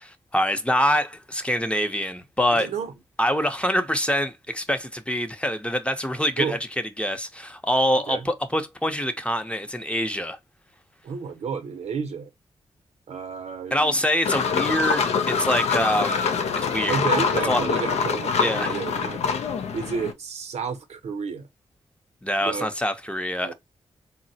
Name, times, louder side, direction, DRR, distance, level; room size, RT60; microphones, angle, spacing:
voice 1, 0.0-2.7 3.2-6.6 7.0-10.4 13.7-16.3 16.6-17.0 17.5-17.6 18.4-18.8 22.2-23.5, equal, 10° left, 0.6 m, -25 dB
voice 2, 2.5-2.9 6.4-6.6 8.1-8.3 11.0-12.3 13.1-14.0 16.9-19.2 19.7-21.5 22.4-22.7 23.4-23.5, right 6 dB, 75° right, 0.6 m, -31 dB
sound 1, 14.2-20.1, left 6 dB, 75° left, 0.4 m, -25 dB
3.8 x 2.0 x 2.7 m
cardioid pair, 55°, 11 cm